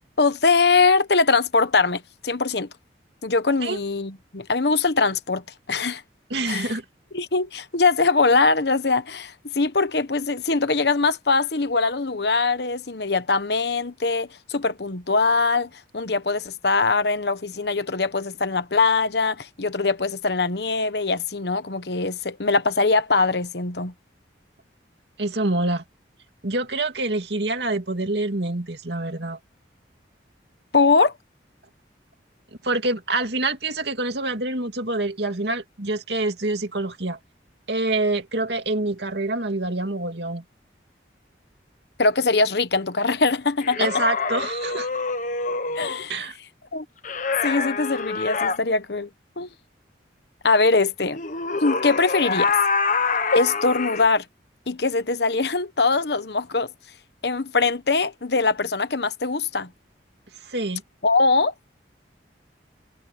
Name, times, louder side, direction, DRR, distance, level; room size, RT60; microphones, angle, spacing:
voice 1, 0.2-2.7 3.2-6.0 6.5-6.7 7.1-23.9 30.7-31.1 42.0-43.9 45.7-46.3 46.7-46.8 47.4-49.1 49.4-49.5 50.4-51.2 51.6-52.5 53.3-54.2 54.7-56.7 57.2-59.7 61.0-61.5, left 4 dB, 65° left, 1.1 m, -22 dB
voice 2, 6.3-6.8 25.2-25.8 26.4-29.4 32.6-37.2 37.7-40.4 43.8-44.9 46.1-46.4 60.4-60.8, right 2 dB, 65° right, 2.5 m, -26 dB
sound 1, 43.6-46.0 47.0-48.6 51.1-54.1, left 4 dB, 45° left, 1.1 m, -26 dB
head